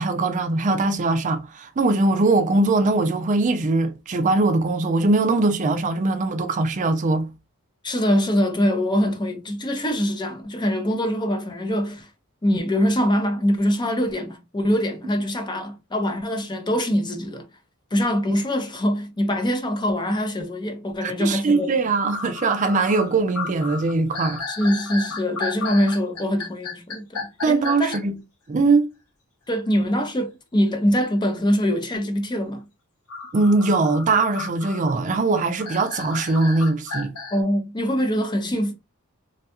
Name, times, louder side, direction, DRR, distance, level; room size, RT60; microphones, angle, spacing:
voice 1, 0.0-7.3 21.0-24.4 27.4-28.2 28.5-28.9 33.3-37.1, right 3 dB, 35° right, 0.4 m, -21 dB
voice 2, 7.8-12.1 12.4-17.5 17.9-21.7 24.5-27.2 27.5-27.9 29.5-32.6 37.3-38.7, equal, 20° left, 0.5 m, -23 dB
sound 1, 21.7-21.8 22.1-28.0 33.1-37.4, left 4 dB, 80° left, 0.9 m, -33 dB
3.2 x 2.3 x 2.8 m
head